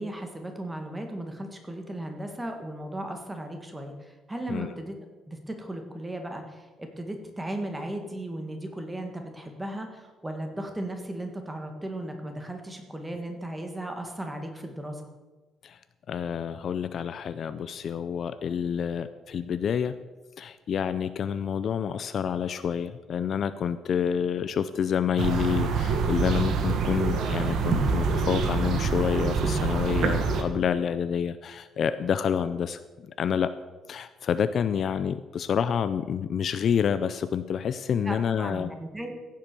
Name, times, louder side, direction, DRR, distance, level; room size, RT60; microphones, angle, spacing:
voice 1, 0.0-4.9 5.3-15.0 38.1-39.2, right 1 dB, 10° right, 4 dB, 1.7 m, -36 dB
voice 2, 16.1-20.0 20.4-33.5 33.9-38.7, left 8 dB, 45° left, 12 dB, 0.5 m, -28 dB
sound 1, 25.2-30.4, right 5 dB, 60° right, 1.7 m, -26 dB
15.5 x 7.6 x 6.8 m, 1.3 s
cardioid pair, 160°, 0 cm